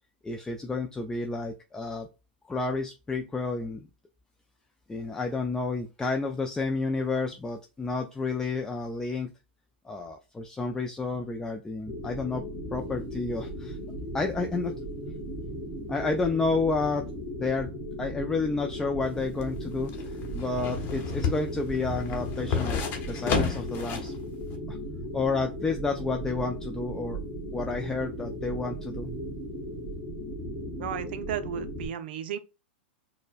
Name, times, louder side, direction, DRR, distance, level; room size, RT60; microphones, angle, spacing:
voice 1, 0.2-2.1 2.5-3.9 4.9-9.3 9.8-12.5 12.7-13.8 14.1-14.8 15.9-17.1 17.4-17.7 18.0-20.0 20.3-22.8 23.1-24.1 24.7-24.8 25.1-27.2 27.5-29.1, left 3 dB, 10° left, 0.3 m, -30 dB
sound 1, 11.9-31.9, equal, 5° right, 1.6 m, -37 dB
sound 2, 19.0-24.1 24.5-24.6, left 5 dB, 35° left, 0.9 m, -31 dB
voice 2, 30.8-32.4, right 9 dB, 65° right, 0.5 m, -34 dB
4.3 x 2.1 x 2.5 m
hypercardioid pair, 105°, 6 cm